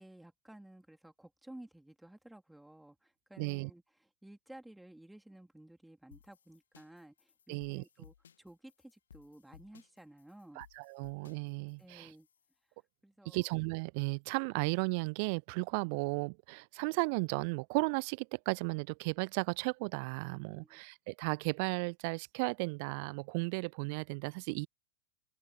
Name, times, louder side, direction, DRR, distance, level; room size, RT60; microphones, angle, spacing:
voice 1, 0.0-10.7 11.8-12.3 13.0-13.5 20.5-20.8, right 1 dB, 5° right, 3.5 m, -55 dB
voice 2, 3.4-3.7 7.5-7.8 10.6-12.1 13.3-24.7, right 33 dB, 45° right, 0.6 m, -35 dB
sound 1, 6.1-12.5, left 8 dB, 65° left, 1.6 m, -61 dB
open air
figure-of-eight pair, 90°, 0 cm